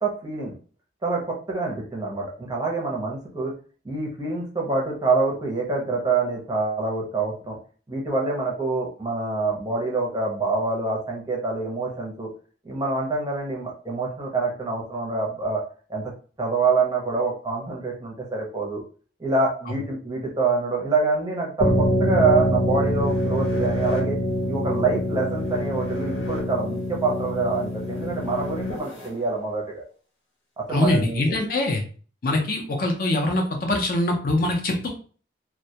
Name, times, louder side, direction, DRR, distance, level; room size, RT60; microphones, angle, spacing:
voice 1, 0.0-0.5 1.0-3.5 3.8-7.6 7.9-12.3 12.6-15.6 15.9-16.1 16.4-18.8 19.2-24.2 24.5-29.8 30.6-31.4, right 3 dB, 20° right, -2 dB, 0.5 m, -26 dB
sound 1, 21.6-29.1, equal, 80° left, 0.9 m, -25 dB
voice 2, 30.7-31.8 32.2-34.9, left 2 dB, 50° left, 2 dB, 0.5 m, -23 dB
2.1 x 2.1 x 2.7 m, 0.41 s
head